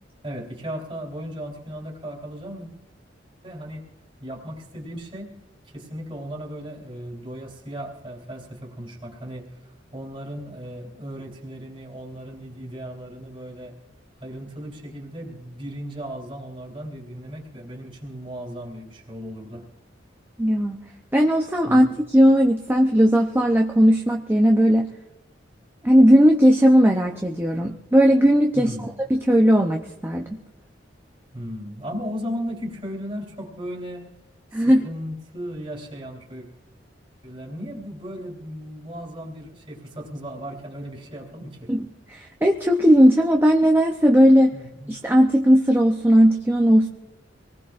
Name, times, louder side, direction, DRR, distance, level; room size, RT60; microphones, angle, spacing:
voice 1, 0.2-2.7 3.4-3.8 4.2-5.3 5.6-9.5 9.9-13.8 14.2-19.6 21.6-21.9 28.5-28.9 31.3-34.1 34.5-36.5 37.2-41.7 44.5-44.9, equal, 30° right, -1 dB, 3.2 m, -36 dB
voice 2, 20.4-20.8 21.1-24.9 25.8-28.7 29.1-30.3 34.5-34.9 41.7-44.5 44.9-46.9, equal, 10° right, 1 dB, 0.7 m, -17 dB
26.0 x 19.5 x 2.5 m, 0.93 s
head